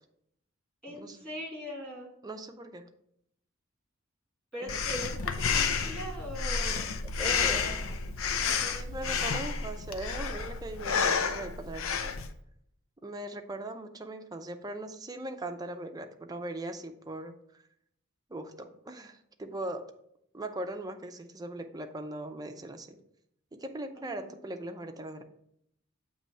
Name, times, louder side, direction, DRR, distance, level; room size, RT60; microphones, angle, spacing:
voice 1, 0.8-2.1 4.5-6.9 7.2-8.5 24.0-24.3, equal, 5° left, -3 dB, 2.2 m, -41 dB
voice 2, 2.2-2.9 4.6-4.8 7.2-7.7 8.2-12.2 13.0-17.3 18.3-19.9 20.3-23.0 23.5-25.2, right 1 dB, 20° right, 6 dB, 0.5 m, -40 dB
Breathing, 4.7-12.3, left 5 dB, 80° left, 0.6 m, -30 dB
7.6 x 3.1 x 5.5 m, 0.72 s
head